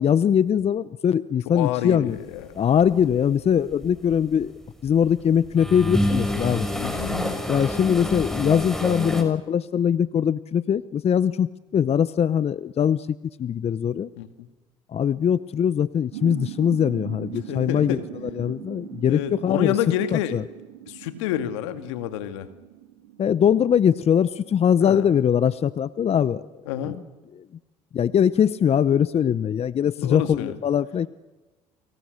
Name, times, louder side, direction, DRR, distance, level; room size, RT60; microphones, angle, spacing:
voice 1, 0.0-2.2 2.5-4.5 4.8-6.7 7.5-13.1 13.4-14.1 14.9-19.7 20.1-20.4 23.2-26.4 26.8-27.0 27.9-31.1, left 8 dB, 45° left, 17 dB, 0.9 m, -22 dB
voice 2, 1.5-2.5 6.8-7.4 14.2-14.5 17.5-18.0 19.1-20.4 20.9-22.5 24.8-25.1 26.7-27.0 30.0-30.6, left 11 dB, 85° left, 10 dB, 2.1 m, -29 dB
sound 1, 2.8-3.1 3.6-4.9 5.3-9.2, left 1 dB, 5° left, 5.8 m, -27 dB
sound 2, 16.1-25.3, right 12 dB, 85° right, 3.0 m, -40 dB
30.0 x 26.0 x 6.7 m, 1.1 s
hypercardioid pair, 65°, 15 cm